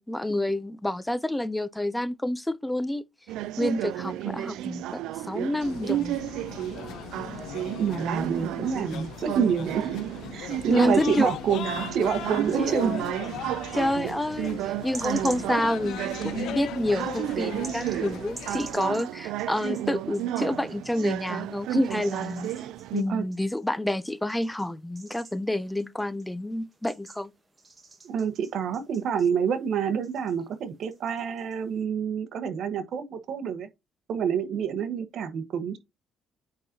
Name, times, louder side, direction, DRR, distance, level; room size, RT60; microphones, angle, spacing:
voice 1, 0.0-3.0 3.6-5.0 5.3-6.2 8.6-8.7 10.7-11.3 12.6-13.1 13.7-22.5 22.9-27.3, left 1 dB, 5° left, 0.4 m, -28 dB
sound 1, 3.3-23.0, right 13 dB, 80° right, 0.4 m, -33 dB
sound 2, 5.6-18.7, left 11 dB, 65° left, 0.5 m, -39 dB
voice 2, 7.8-9.9 10.3-11.6 11.9-13.0 23.1-23.2 28.0-33.7 34.1-35.8, right 7 dB, 55° right, 1.2 m, -27 dB
sound 3, 12.5-13.5 14.1-21.4 21.7-29.8 30.0-31.8, right 3 dB, 20° right, 1.4 m, -49 dB
8.9 x 3.9 x 2.7 m
cardioid pair, 150°, 0 cm